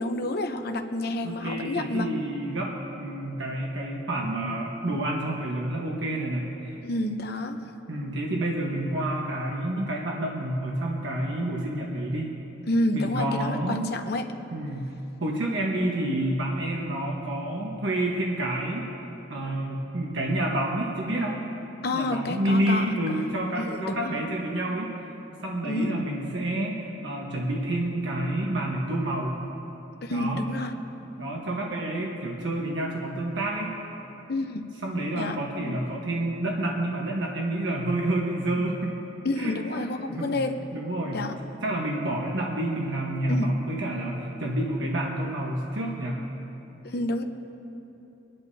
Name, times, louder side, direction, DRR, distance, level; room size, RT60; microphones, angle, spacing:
voice 1, 0.0-2.1 6.8-7.6 12.7-14.3 21.8-22.8 23.6-24.2 25.6-26.0 30.0-30.7 34.3-34.6 35.2-35.9 38.5-38.7 39.2-40.6 41.1-41.3 43.3-43.5 46.8-47.2, left 1 dB, 55° left, 6 dB, 0.8 m, -29 dB
voice 2, 1.2-6.8 7.9-12.3 12.9-13.8 14.5-14.9 15.2-18.9 19.3-21.4 21.9-25.1 25.4-29.4 30.1-30.4 31.2-33.7 34.8-38.9 39.3-40.4 40.7-41.2 41.6-46.3, right 1 dB, 75° right, -2 dB, 1.3 m, -29 dB
24.5 x 10.5 x 2.8 m, 3.0 s
head